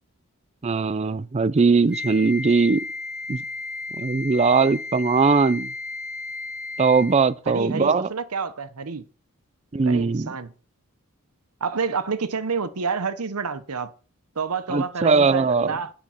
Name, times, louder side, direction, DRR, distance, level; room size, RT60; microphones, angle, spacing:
voice 1, 0.6-2.8 3.3-3.4 4.0-5.7 6.8-8.1 9.7-10.3 14.7-15.7, right 4 dB, 30° right, 0.4 m, -20 dB
Wind instrument woodwind instrument, 1.9-7.3, left 3 dB, 5° right, 1.5 m, -34 dB
voice 2, 7.5-9.0 9.8-10.5 11.6-13.9 14.4-15.9, right 5 dB, 80° right, 0.8 m, -28 dB
9.8 x 6.7 x 5.8 m
head